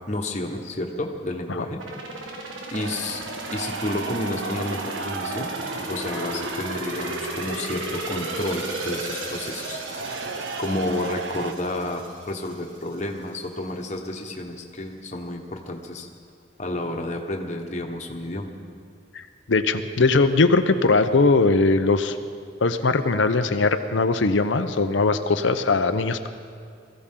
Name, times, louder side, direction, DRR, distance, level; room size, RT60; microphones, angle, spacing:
voice 1, 0.0-1.8 2.7-3.2 3.5-5.5 5.8-9.8 10.3-16.1 16.6-18.5, left 1 dB, 35° left, 2 dB, 1.3 m, -30 dB
sound 1, 1.8-12.5 12.9-13.0, right 2 dB, 90° right, 1.8 m, -34 dB
sound 2, 2.7-11.5, right 4 dB, 65° right, 0.7 m, -35 dB
voice 2, 19.1-22.2 22.6-26.3, left 3 dB, 75° left, 9 dB, 0.7 m, -20 dB
21.5 x 15.0 x 3.8 m, 2.3 s
head